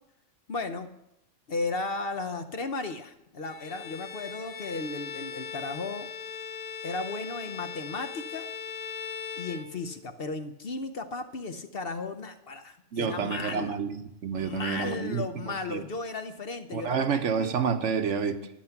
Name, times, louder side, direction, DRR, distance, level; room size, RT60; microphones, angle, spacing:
voice 1, 0.5-0.9 1.5-6.1 6.8-8.5 9.4-13.8 14.4-17.6, left 3 dB, 50° left, 8 dB, 0.9 m, -35 dB
Bowed string instrument, 3.4-10.2, left 6 dB, 90° left, 1.6 m, -40 dB
voice 2, 12.9-15.8 16.7-18.5, right 6 dB, 65° right, 9 dB, 1.1 m, -29 dB
11.5 x 10.0 x 5.9 m, 0.84 s
omnidirectional pair, 1.4 m